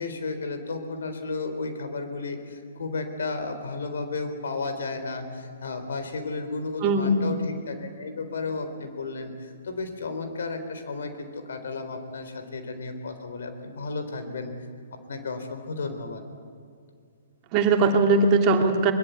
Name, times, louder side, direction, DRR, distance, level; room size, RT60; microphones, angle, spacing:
voice 1, 0.0-14.5 15.1-16.2, left 3 dB, 70° left, 8 dB, 3.9 m, -33 dB
voice 2, 6.8-7.3 17.5-18.9, right 3 dB, 35° right, 4 dB, 2.6 m, -20 dB
22.5 x 21.5 x 8.3 m, 2.3 s
hypercardioid pair, 125°, 0 cm